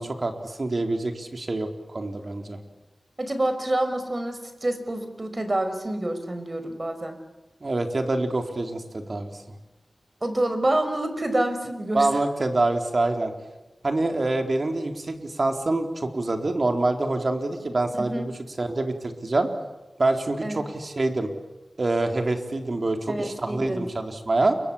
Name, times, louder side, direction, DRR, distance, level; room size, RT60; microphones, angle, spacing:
voice 1, 0.0-2.6 7.6-9.3 11.9-13.3 13.8-19.5 20.0-21.3 21.8-24.5, right 2 dB, 55° right, 5 dB, 4.0 m, -26 dB
voice 2, 3.2-7.2 10.2-12.1 17.9-18.3 20.4-20.7 23.1-23.9, right 1 dB, 40° right, 8 dB, 5.5 m, -27 dB
29.0 x 24.5 x 7.3 m, 1.1 s
wide cardioid pair, 55°, 0 cm